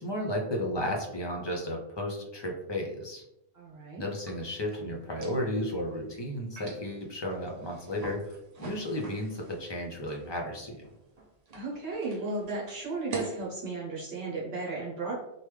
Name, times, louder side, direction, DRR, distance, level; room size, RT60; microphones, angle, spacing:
voice 1, 0.0-3.2 4.0-10.8, left 1 dB, 35° left, 0 dB, 0.5 m, -33 dB
voice 2, 3.5-4.0 11.5-15.1, right 3 dB, 70° right, -4 dB, 1.0 m, -34 dB
sound 1, 4.1-13.5, right 2 dB, 50° right, 0.5 m, -47 dB
3.4 x 2.2 x 3.1 m, 0.87 s
omnidirectional pair, 1.1 m